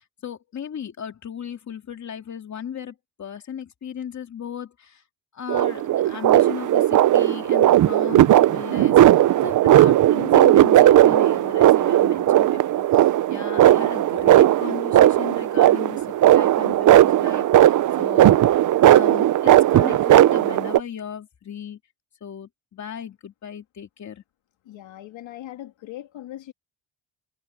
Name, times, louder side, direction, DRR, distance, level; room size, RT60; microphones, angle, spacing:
voice 1, 0.0-5.0 5.3-18.4 18.8-21.8 22.2-24.2, left 8 dB, 35° left, 2.7 m, -36 dB
sound 1, 5.5-20.8, right 13 dB, 45° right, 0.4 m, -16 dB
voice 2, 24.6-26.5, left 13 dB, 75° left, 2.3 m, -39 dB
cardioid pair, 175°, 46 cm